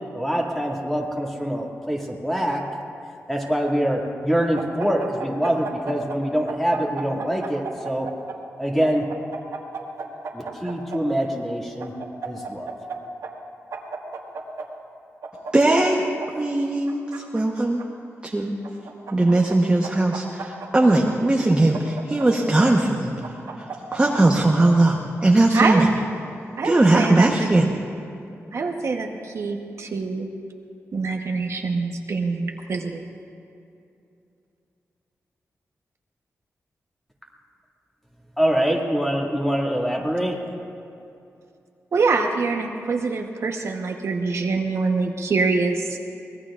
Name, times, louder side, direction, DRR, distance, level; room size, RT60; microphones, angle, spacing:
voice 1, 0.1-2.6 3.3-8.1 8.6-9.0 10.3-11.9 12.2-12.7 38.4-40.4, equal, 5° left, -2 dB, 2.2 m, -24 dB
sound 1, 4.6-6.2 6.5-8.4 8.8-11.0 11.8-13.0 13.2-13.3 13.7-14.7 15.2-16.3 16.9-17.8 18.6-19.6 19.8-21.1 21.7-22.7 23.2-24.2, right 5 dB, 80° right, 1.7 m, -34 dB
voice 2, 15.5-16.0 16.4-17.8 18.2-18.5 19.1-23.1 23.9-25.9 26.4-27.6, right 2 dB, 20° right, 0 dB, 1.0 m, -19 dB
voice 3, 25.5-25.9 26.6-27.3 28.5-30.3 30.9-33.1 41.9-46.0, right 4 dB, 60° right, 2 dB, 1.1 m, -25 dB
24.0 x 19.5 x 2.5 m, 2.7 s
wide cardioid pair, 105°, 5 cm